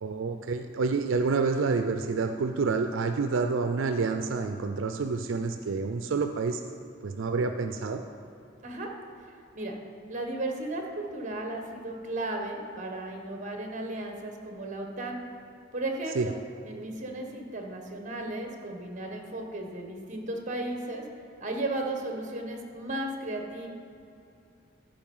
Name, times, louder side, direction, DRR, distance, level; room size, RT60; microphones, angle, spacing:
voice 1, 0.0-6.6 7.0-8.0 16.2-16.3, right 4 dB, 85° right, 6 dB, 0.5 m, -28 dB
voice 2, 10.1-15.2 15.7-16.3 16.6-21.0 21.4-23.7, right 2 dB, 40° right, 2 dB, 1.3 m, -35 dB
14.0 x 5.1 x 5.5 m, 2.7 s
head